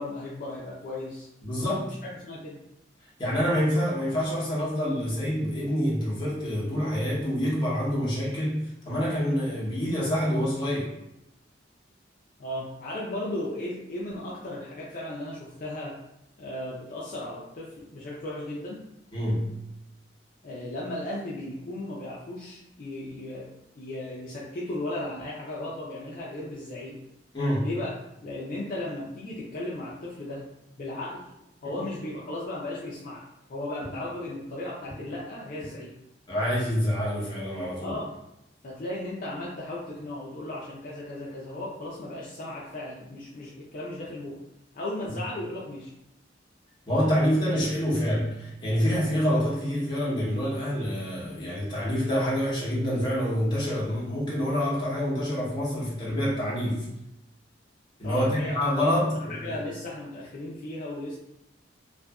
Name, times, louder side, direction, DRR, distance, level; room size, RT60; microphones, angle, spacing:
voice 1, 0.0-1.3 1.9-2.6 12.4-16.0 16.4-18.8 20.4-23.5 23.8-27.0 27.6-27.9 28.2-30.4 30.8-31.2 31.6-33.2 33.5-35.9 37.8-38.1 38.6-44.4 44.7-45.9 58.0-58.6 58.8-61.2, left 1 dB, 50° left, -5 dB, 0.4 m, -36 dB
voice 2, 1.4-1.9 3.2-10.9 19.1-19.5 27.3-27.7 36.3-38.0 46.9-56.9 58.0-59.6, equal, 25° left, -6 dB, 0.8 m, -27 dB
2.6 x 2.5 x 2.2 m, 0.86 s
head